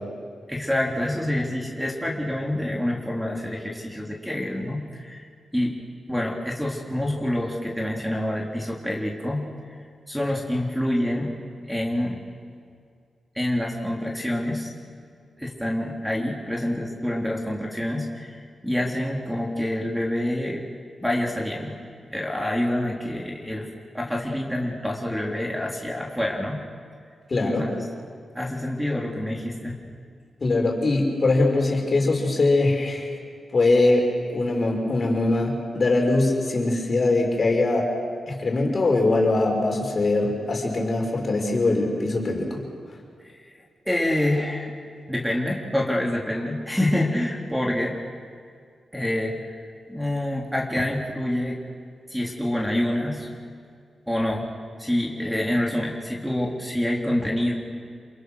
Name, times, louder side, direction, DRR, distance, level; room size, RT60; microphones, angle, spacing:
voice 1, 0.5-5.3 5.5-5.8 6.1-9.4 10.1-11.3 11.7-12.2 13.4-14.7 15.4-18.4 18.6-20.6 21.0-21.8 22.1-23.7 23.9-26.6 27.4-27.8 28.4-29.8 43.2-43.4 43.9-44.7 45.1-48.0 48.9-49.4 49.9-51.6 52.1-53.3 54.1-54.5 54.8-57.5, left 1 dB, 5° right, -2 dB, 3.5 m, -27 dB
voice 2, 27.3-27.6 30.4-33.1 33.5-37.9 38.3-42.6, left 2 dB, 50° left, 0 dB, 5.7 m, -22 dB
28.5 x 21.5 x 6.5 m, 2.2 s
cardioid pair, 65°, 0 cm